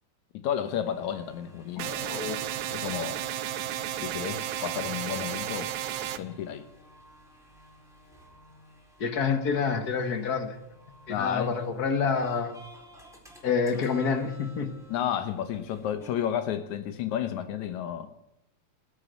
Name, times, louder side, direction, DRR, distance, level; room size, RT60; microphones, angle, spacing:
voice 1, 0.3-2.1 2.7-3.2 4.0-5.7 6.2-6.7 11.1-11.5 14.9-18.1, left 9 dB, 80° left, 2.4 m, -32 dB
sound 1, 0.8-16.1, equal, ahead, 3.9 m, -53 dB
voice 2, 1.8-2.4 9.0-10.6 11.1-12.5 13.4-14.8, left 5 dB, 45° left, 1.5 m, -28 dB
sound 2, 1.8-6.2, right 11 dB, 85° right, 2.2 m, -33 dB
20.0 x 8.3 x 8.1 m
omnidirectional pair, 3.3 m